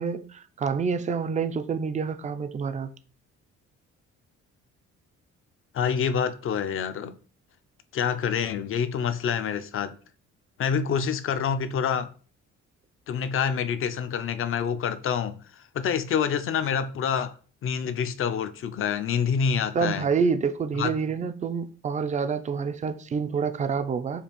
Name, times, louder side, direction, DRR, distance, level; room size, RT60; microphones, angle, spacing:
voice 1, 0.0-2.9 19.7-24.2, right 5 dB, 25° right, 0.3 m, -27 dB
voice 2, 5.7-7.2 7.9-10.0 10.6-12.1 13.1-17.3 17.6-20.1 20.8-20.9, left 7 dB, 45° left, 0.4 m, -27 dB
5.1 x 2.4 x 3.0 m
cardioid pair, 90°, 30 cm